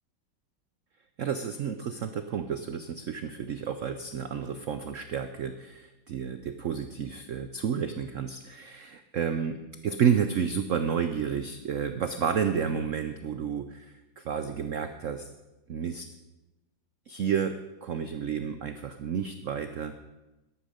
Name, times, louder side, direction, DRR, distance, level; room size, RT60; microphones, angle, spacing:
voice 1, 1.2-9.6 9.8-15.3 15.7-16.1 17.1-19.9, right 7 dB, 75° right, 9 dB, 0.7 m, -31 dB
13.0 x 11.5 x 5.1 m, 1.0 s
omnidirectional pair, 2.1 m